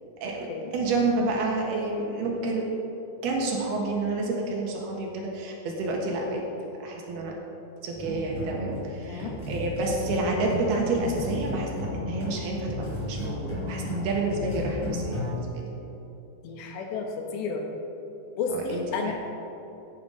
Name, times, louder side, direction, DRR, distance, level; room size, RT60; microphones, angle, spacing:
voice 1, 0.2-2.7 3.2-6.4 6.8-7.3 7.8-15.7 18.5-19.1, right 2 dB, 70° right, -1 dB, 3.3 m, -29 dB
sound 1, 7.9-15.4, left 1 dB, 35° left, 4.2 m, -34 dB
voice 2, 16.4-17.1 17.3-17.7 18.4-19.1, left 4 dB, 80° left, 2 dB, 3.6 m, -31 dB
15.0 x 9.3 x 5.2 m, 3.0 s
omnidirectional pair, 5.0 m